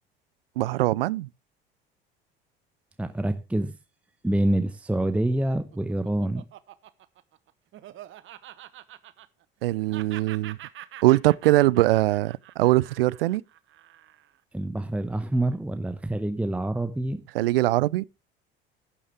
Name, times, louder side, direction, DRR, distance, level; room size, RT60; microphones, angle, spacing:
voice 1, 0.6-1.3 9.6-10.6 11.0-13.4 17.3-18.1, right 17 dB, 75° right, 0.5 m, -22 dB
voice 2, 3.0-3.7 4.2-6.4 14.5-17.2, right 1 dB, 5° right, 0.9 m, -26 dB
Laughter, 5.4-9.6 9.9-14.4, right 13 dB, 45° right, 0.9 m, -46 dB
12.0 x 9.8 x 3.4 m
figure-of-eight pair, 60°, 29 cm